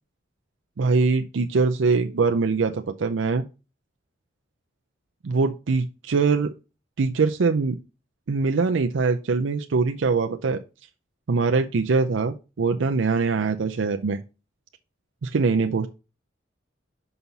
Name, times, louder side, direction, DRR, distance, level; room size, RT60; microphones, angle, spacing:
voice 1, 0.8-3.4 5.2-6.5 7.0-7.8 8.3-10.6 11.3-14.2 15.2-15.9, right 4 dB, 80° right, 6 dB, 0.5 m, -23 dB
5.8 x 5.5 x 4.0 m, 0.30 s
head